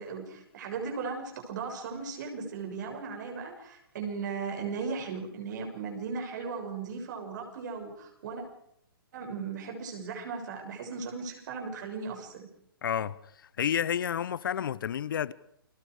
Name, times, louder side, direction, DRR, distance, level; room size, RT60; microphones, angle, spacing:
voice 1, 0.0-8.4 9.1-12.5, right 5 dB, 50° right, 6.7 m, -37 dB
voice 2, 12.8-13.2 13.6-15.3, left 9 dB, 65° left, 0.9 m, -30 dB
30.0 x 22.0 x 5.0 m
hypercardioid pair, 150°, 12 cm